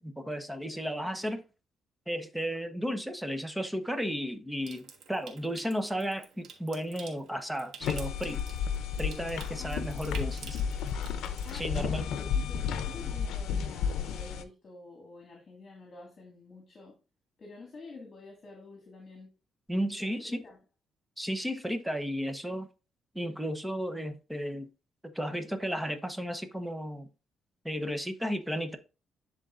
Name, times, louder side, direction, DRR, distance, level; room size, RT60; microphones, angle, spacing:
voice 1, 0.0-1.4 2.1-8.4 9.0-10.6 11.5-12.1 19.7-20.4 21.2-22.7 23.1-24.7 25.0-27.1 27.6-28.8, equal, 5° right, 1.0 m, -34 dB
Water tap faucet / Sink (filling or washing) / Trickle dribble, 4.6-11.6, right 6 dB, 70° right, 1.3 m, -50 dB
sound 1, 7.8-14.4, left 7 dB, 85° left, 0.6 m, -32 dB
voice 2, 9.6-10.3 11.4-17.0 17.4-19.3 20.0-20.6, left 3 dB, 40° left, 2.0 m, -49 dB
11.0 x 3.7 x 2.5 m
cardioid pair, 90°, 0 cm